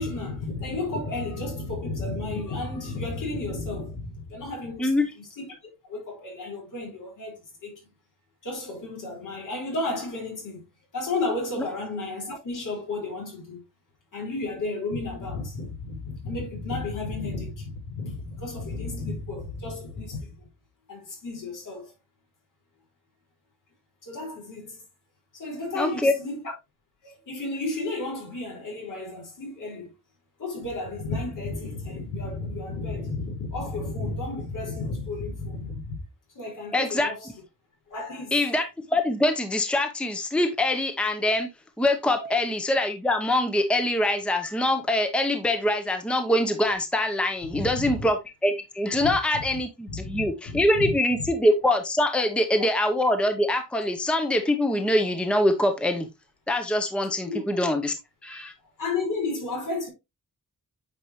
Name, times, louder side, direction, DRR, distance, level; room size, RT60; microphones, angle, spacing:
voice 1, 0.0-5.5 5.8-7.8 8.4-10.6 10.9-13.6 14.1-20.3 20.9-21.9 24.0-24.8 25.3-26.5 27.0-29.9 30.4-35.9 36.3-37.3 37.9-38.4 42.2-42.3 47.5-47.9 49.0-49.4 49.9-50.2 50.7-50.9 51.2-51.3 52.6-52.7 57.3-57.4 58.8-59.9, left 2 dB, 70° left, 4.7 m, -32 dB
voice 2, 4.8-5.1 25.7-26.1 36.7-37.1 38.3-41.5 41.8-48.2 48.4-56.1 56.5-57.9 58.2-58.5, left 1 dB, 5° left, 0.7 m, -24 dB
8.9 x 5.3 x 3.0 m
wide cardioid pair, 175°, 33 cm